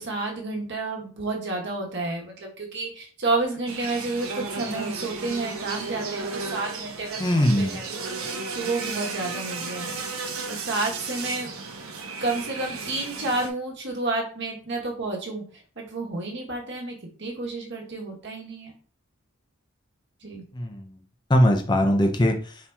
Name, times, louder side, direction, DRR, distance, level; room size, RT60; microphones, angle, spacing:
voice 1, 0.0-10.0 10.4-11.5 12.2-18.7 20.2-20.4, right 2 dB, 55° right, 0 dB, 1.3 m, -30 dB
sound 1, 3.7-13.5, right 4 dB, 75° right, 0.8 m, -34 dB
voice 2, 7.2-7.8 20.5-20.9 21.3-22.4, equal, 20° left, 5 dB, 0.6 m, -20 dB
4.3 x 2.8 x 3.5 m, 0.40 s
head